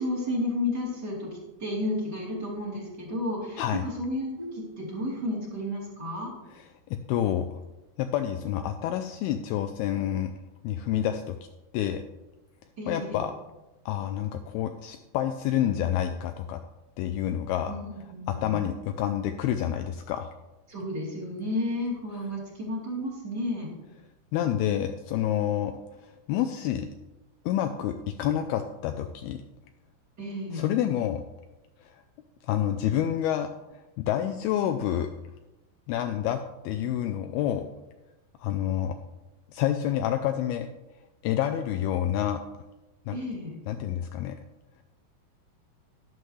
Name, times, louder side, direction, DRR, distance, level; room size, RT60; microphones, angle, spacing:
voice 1, 0.0-1.3 1.6-6.3 12.8-13.2 17.7-18.6 20.7-23.7 30.2-30.6 43.1-43.6, left 1 dB, 25° right, -4 dB, 3.6 m, -32 dB
voice 2, 6.5-7.5 8.0-10.3 10.6-11.4 11.7-12.0 12.9-13.3 13.9-16.6 17.0-17.7 18.3-20.3 24.3-25.7 26.0-26.9 27.5-29.4 30.5-31.2 31.8-32.0 32.5-35.1 35.9-37.6 38.4-39.0 39.5-40.7 41.2-42.4 43.1-43.2 43.7-44.4, left 10 dB, 90° left, 6 dB, 2.2 m, -28 dB
12.0 x 11.0 x 3.3 m, 0.99 s
omnidirectional pair, 5.1 m